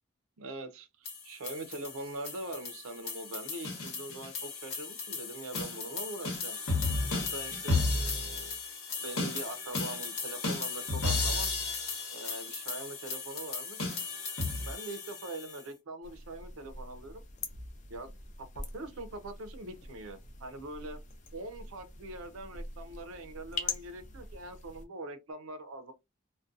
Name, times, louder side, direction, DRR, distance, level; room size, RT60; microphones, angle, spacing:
voice 1, 0.4-6.6 7.1-8.6 9.0-11.6 12.1-13.9 14.7-17.2 17.9-18.1 18.4-18.5 18.7-21.0 21.3-25.9, right 2 dB, 80° right, 0.5 m, -43 dB
sound 1, 1.1-15.6, left 3 dB, 90° left, 1.0 m, -34 dB
sound 2, 16.0-24.9, left 4 dB, 35° left, 0.4 m, -44 dB
2.5 x 2.1 x 2.4 m
head